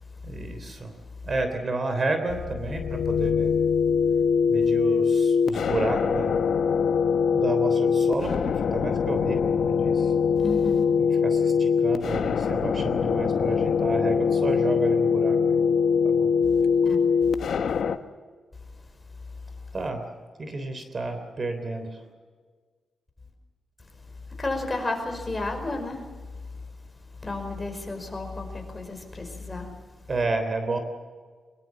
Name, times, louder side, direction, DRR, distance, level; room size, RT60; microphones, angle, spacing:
voice 1, 0.2-0.9 1.2-3.5 4.5-6.5 7.3-10.1 11.0-15.7 16.0-16.3 19.7-20.0 20.4-22.0 30.1-30.8, right 2 dB, 40° right, 7 dB, 3.4 m, -31 dB
sound 1, 2.3-18.0, left 6 dB, 70° left, 1.1 m, -23 dB
voice 2, 10.4-10.8 16.8-17.0 24.4-26.1 26.4-26.5 27.2-29.8, left 2 dB, 20° left, 4 dB, 5.1 m, -32 dB
23.5 x 23.0 x 7.4 m, 1.5 s
wide cardioid pair, 120°, 0 cm